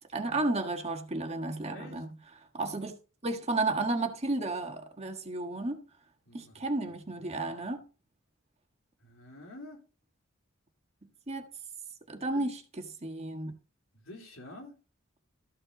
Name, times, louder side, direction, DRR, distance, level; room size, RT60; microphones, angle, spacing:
voice 1, 0.1-2.1 2.5-2.9 3.2-5.8 6.3-7.8 11.3-11.5 12.1-13.5, right 2 dB, 30° right, 1.5 m, -32 dB
voice 2, 1.7-2.0 6.3-6.5 9.0-9.8 12.3-12.4 13.9-14.7, left 1 dB, 90° left, 3.6 m, -48 dB
14.0 x 5.7 x 4.1 m
head